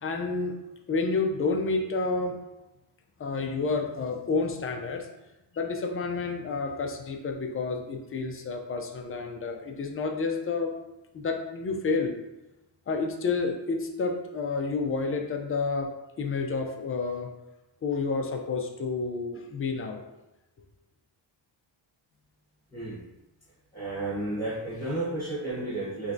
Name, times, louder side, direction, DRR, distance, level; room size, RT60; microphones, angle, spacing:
voice 1, 0.0-0.5 0.9-2.3 3.2-5.1 5.5-10.7 11.1-12.2 12.9-15.9 16.2-17.3 17.8-20.0, left 4 dB, 30° left, 3 dB, 0.4 m, -29 dB
voice 2, 23.7-26.1, right 2 dB, 10° left, -8 dB, 1.2 m, -32 dB
4.3 x 3.2 x 2.5 m, 0.96 s
wide cardioid pair, 150°, 46 cm